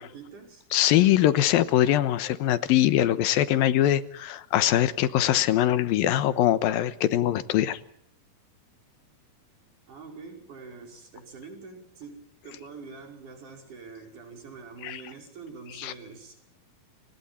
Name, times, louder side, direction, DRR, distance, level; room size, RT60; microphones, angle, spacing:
voice 1, 0.0-0.7 9.9-16.4, right 4 dB, 60° right, 2 dB, 6.7 m, -45 dB
voice 2, 0.7-7.8 14.8-15.0 15.8-15.9, left 12 dB, 85° left, 13 dB, 2.9 m, -22 dB
30.0 x 25.0 x 4.4 m, 0.68 s
omnidirectional pair, 4.1 m